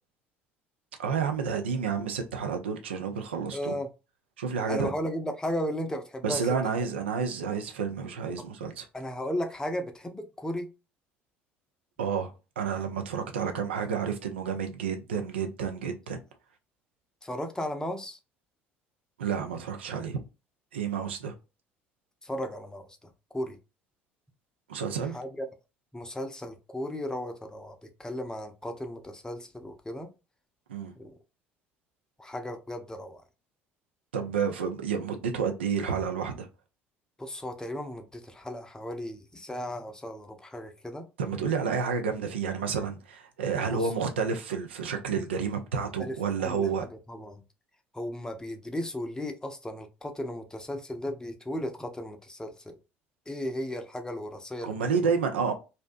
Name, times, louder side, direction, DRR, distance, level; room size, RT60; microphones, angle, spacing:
voice 1, 1.0-3.7 4.4-4.9 6.2-8.9 12.0-16.2 19.2-20.2 20.7-21.3 24.7-25.2 30.7-30.9 34.1-36.5 41.2-46.9 54.6-55.5, right 6 dB, 75° right, 0.4 m, -30 dB
voice 2, 3.5-3.9 4.7-6.4 8.9-10.7 17.2-18.2 22.2-22.9 23.3-23.6 25.1-25.5 25.9-30.1 31.0-31.1 32.2-33.2 37.2-41.0 43.7-43.8 46.0-46.1 46.4-46.7 47.1-47.4 47.9-52.8 53.3-54.7, left 1 dB, 10° left, 0.6 m, -35 dB
2.6 x 2.1 x 2.5 m
figure-of-eight pair, 60°, 6 cm